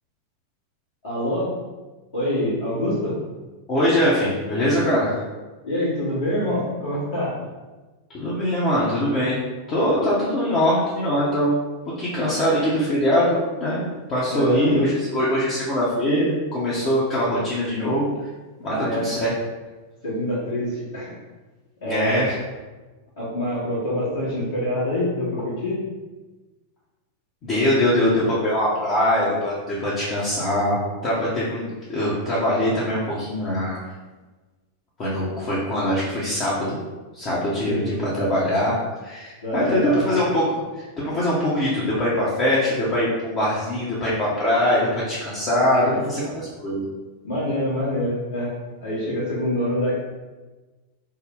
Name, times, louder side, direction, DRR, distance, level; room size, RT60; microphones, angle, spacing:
voice 1, 1.0-1.5 2.1-3.2 5.6-7.3 14.3-14.7 18.6-19.2 20.0-21.1 21.8-22.2 23.2-25.8 37.6-37.8 38.1-38.3 39.4-40.1 45.7-45.8 47.2-48.5 48.8-49.9, left 1 dB, 60° left, -10 dB, 1.1 m, -25 dB
voice 2, 3.7-5.2 8.1-9.4 9.7-11.6 11.8-18.1 18.6-19.3 21.8-22.4 27.4-33.8 35.0-36.8 37.1-46.8, equal, 30° left, -8 dB, 0.8 m, -22 dB
3.3 x 2.1 x 3.6 m, 1.2 s
figure-of-eight pair, 90°, 0 cm